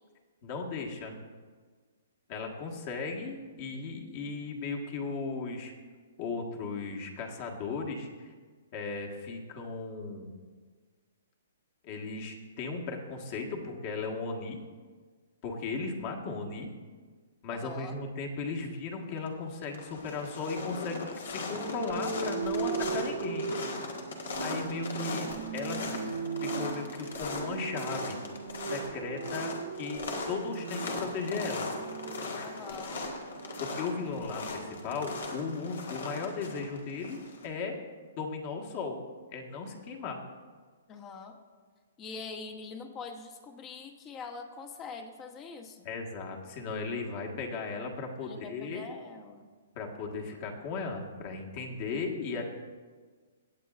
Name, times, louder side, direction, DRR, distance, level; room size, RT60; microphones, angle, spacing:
voice 1, 0.4-1.1 2.3-5.7 6.2-8.3 8.7-10.3 11.8-14.6 15.4-16.7 17.4-23.5 24.4-25.3 25.5-25.8 26.5-28.2 28.6-31.6 33.6-37.8 38.2-39.0 39.3-40.2 45.8-48.8 49.7-52.4, left 4 dB, 40° left, 1 dB, 1.5 m, -36 dB
voice 2, 17.5-17.9 22.6-23.3 32.4-33.1 40.9-41.4 42.0-45.9 48.2-49.5, left 4 dB, 25° left, 5 dB, 0.9 m, -44 dB
sound 1, 18.9-19.3 19.6-37.5, left 3 dB, 75° left, 1.6 m, -39 dB
sound 2, 21.5-35.2, right 6 dB, 85° right, 1.5 m, -38 dB
17.0 x 8.3 x 2.5 m, 1.5 s
hypercardioid pair, 140°, 0 cm